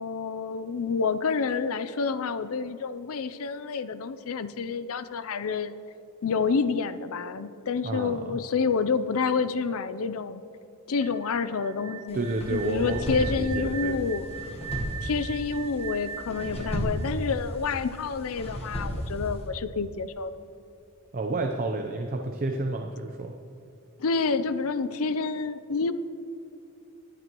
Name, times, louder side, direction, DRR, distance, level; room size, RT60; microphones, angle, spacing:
voice 1, 0.0-5.8 6.2-10.4 10.9-14.3 15.0-20.3 24.0-25.9, left 5 dB, 70° left, 13 dB, 0.5 m, -28 dB
voice 2, 7.8-8.4 12.1-14.0 21.1-23.3, right 2 dB, 40° right, 3 dB, 0.6 m, -30 dB
sound 1, 10.9-17.8, right 7 dB, 70° right, 0.9 m, -41 dB
sound 2, 12.1-19.4, equal, 30° left, 1.3 m, -34 dB
21.0 x 9.2 x 3.0 m, 2.7 s
head